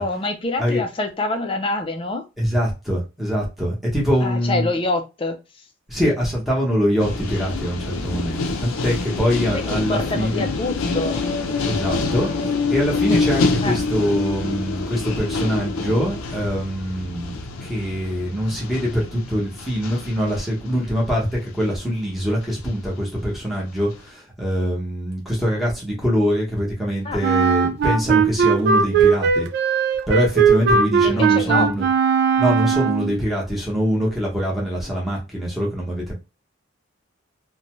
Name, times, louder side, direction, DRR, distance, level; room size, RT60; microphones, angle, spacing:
voice 1, 0.0-2.2 4.2-5.4 9.5-11.2 13.6-13.8 27.0-27.2 31.0-31.7, left 2 dB, 25° left, 0.4 m, -26 dB
voice 2, 2.4-4.7 5.9-10.4 11.7-29.5 30.1-31.9 32.4-36.1, equal, ahead, 0.9 m, -23 dB
sound 1, 7.0-21.9 22.6-23.0, left 3 dB, 90° left, 0.5 m, -26 dB
Wind instrument woodwind instrument, 27.2-33.2, right 6 dB, 50° right, 0.3 m, -18 dB
2.6 x 2.2 x 3.0 m
head